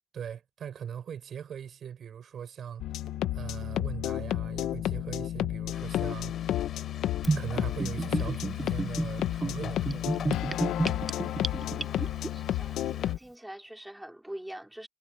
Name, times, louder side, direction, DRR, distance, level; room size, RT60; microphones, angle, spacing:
voice 1, 0.1-3.1 3.3-6.3 7.3-10.1, right 8 dB, 60° right, 6.5 m, -40 dB
sound 1, 2.8-13.2, left 12 dB, 85° left, 1.2 m, -32 dB
sound 2, 5.7-13.1, left 9 dB, 65° left, 7.4 m, -47 dB
Gurgling / Bathtub (filling or washing), 7.2-12.3, right 3 dB, 25° right, 0.4 m, -31 dB
voice 2, 11.5-14.9, right 1 dB, 5° right, 3.2 m, -45 dB
cardioid pair, 90°, 0 cm